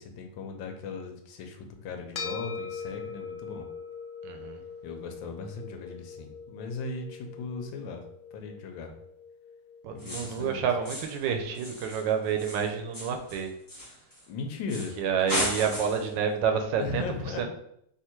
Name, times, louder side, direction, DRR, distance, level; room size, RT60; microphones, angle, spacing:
voice 1, 0.0-3.7 4.8-8.0 8.3-8.9 9.9-10.6 14.3-15.0 16.8-17.4, left 4 dB, 90° left, 4 dB, 1.4 m, -37 dB
sound 1, 2.1-10.7, left 5 dB, 70° left, 1.0 m, -42 dB
voice 2, 4.2-4.6 9.8-13.5 15.0-17.0 17.4-17.5, right 7 dB, 75° right, 5 dB, 1.2 m, -29 dB
sound 2, 10.0-10.5 10.8-11.2 11.5-14.2 14.7-15.0 15.3-16.1, equal, 25° left, 0.4 m, -35 dB
3.6 x 2.9 x 4.4 m, 0.74 s
omnidirectional pair, 2.0 m